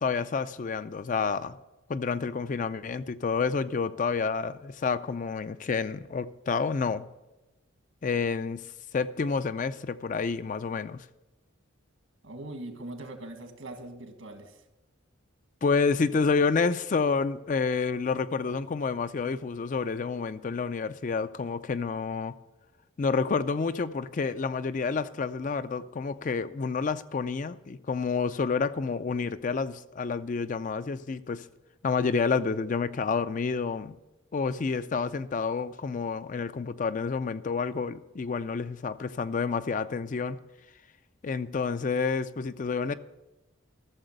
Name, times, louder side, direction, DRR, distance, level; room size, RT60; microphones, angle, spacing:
voice 1, 0.0-1.6 1.9-7.1 8.0-8.7 8.9-11.1 15.6-22.3 23.0-31.5 31.8-34.0 34.3-40.4 41.2-42.9, left 5 dB, 40° left, 0.4 m, -29 dB
voice 2, 12.2-14.6, right 1 dB, 75° right, 1.8 m, -41 dB
13.0 x 7.0 x 6.5 m
head